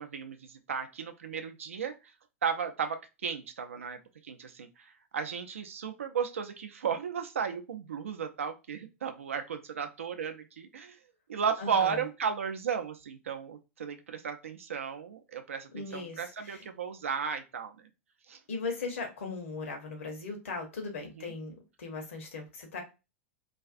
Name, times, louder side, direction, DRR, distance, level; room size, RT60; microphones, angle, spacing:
voice 1, 0.0-2.1 2.4-11.0 11.3-17.7 18.3-18.4 21.0-21.3, right 7 dB, 70° right, 0.4 m, -35 dB
voice 2, 11.6-12.0 15.7-16.7 18.5-22.8, left 4 dB, 65° left, 0.8 m, -38 dB
2.4 x 2.3 x 2.4 m
figure-of-eight pair, 90°, 7 cm